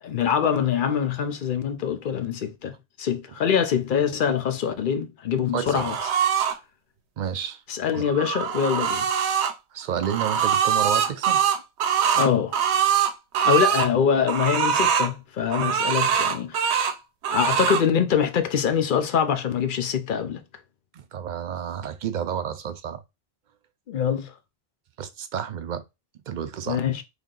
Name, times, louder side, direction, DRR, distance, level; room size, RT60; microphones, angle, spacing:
voice 1, 0.0-5.9 7.7-9.1 12.1-12.6 13.4-16.7 17.3-20.4 23.9-24.3 26.7-27.0, left 7 dB, 55° left, 0.7 m, -24 dB
voice 2, 5.5-5.9 7.2-7.6 7.9-8.0 9.7-11.4 20.9-23.0 25.0-25.8 26.3-26.8, right 8 dB, 55° right, 0.5 m, -30 dB
sound 1, 5.7-6.5 7.9-9.5 10.0-13.9 14.3-15.1 15.5-16.9 17.2-17.8, right 8 dB, 85° right, 0.9 m, -23 dB
3.4 x 2.7 x 3.8 m
omnidirectional pair, 1.1 m